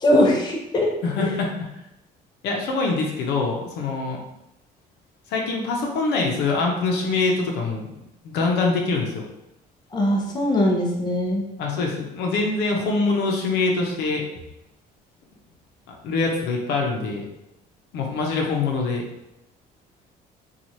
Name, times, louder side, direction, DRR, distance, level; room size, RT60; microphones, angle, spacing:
voice 1, 0.0-0.9 1.2-1.3 9.9-11.5, left 1 dB, 25° left, -1 dB, 0.6 m, -21 dB
voice 2, 1.0-1.5 2.4-4.2 5.3-9.2 11.6-14.2 16.0-17.3 17.9-19.0, left 3 dB, 80° left, 0 dB, 0.6 m, -24 dB
3.0 x 2.3 x 2.7 m, 0.89 s
cardioid pair, 110°, 17 cm